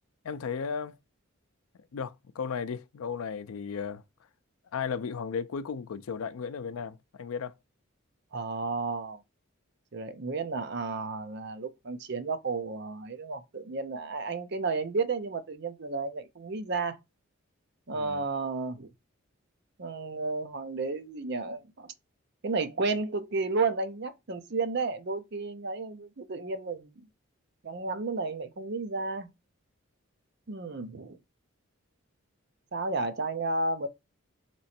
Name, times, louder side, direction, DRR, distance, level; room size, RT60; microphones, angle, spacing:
voice 1, 0.2-1.0 1.9-4.0 4.7-7.5 17.9-18.2, left 6 dB, 85° left, 0.4 m, -35 dB
voice 2, 8.3-9.2 9.9-17.0 17.9-18.9 19.8-21.9 22.4-27.1 27.6-29.3 30.5-31.2 32.7-33.9, right 3 dB, 50° right, 0.6 m, -32 dB
3.9 x 3.0 x 4.2 m
head